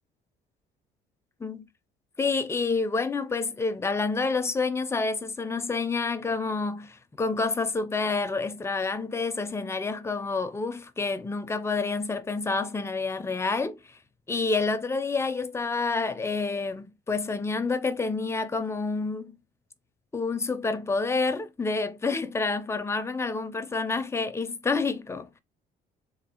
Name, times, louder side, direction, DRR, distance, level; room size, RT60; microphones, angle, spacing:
voice 1, 2.2-13.8 14.3-19.4 20.1-25.4, left 4 dB, 15° left, 0.4 m, -28 dB
3.4 x 2.3 x 2.8 m
cardioid pair, 110°, 17 cm